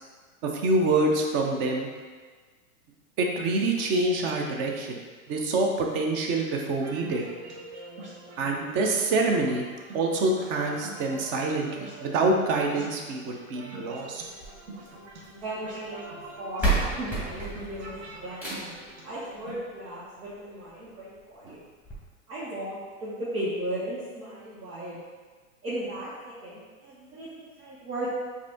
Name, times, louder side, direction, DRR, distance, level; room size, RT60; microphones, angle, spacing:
voice 1, 0.4-1.9 3.2-5.0 5.3-7.3 8.4-9.6 9.9-14.2 21.4-21.6, right 2 dB, 30° right, 1 dB, 0.6 m, -26 dB
sound 1, 6.7-19.5, right 2 dB, 50° right, 1.1 m, -44 dB
sound 2, 14.2-15.4 16.2-16.3 16.6-18.9 20.2-20.3 20.8-20.9 21.2-21.3 21.8-22.0, right 2 dB, 5° right, 1.2 m, -30 dB
voice 2, 15.3-18.7 19.0-21.6 22.3-25.0 25.6-26.1 26.4-28.1, right 1 dB, 80° right, -10 dB, 1.4 m, -36 dB
4.8 x 2.7 x 3.5 m, 1.4 s
hypercardioid pair, 115°, 43 cm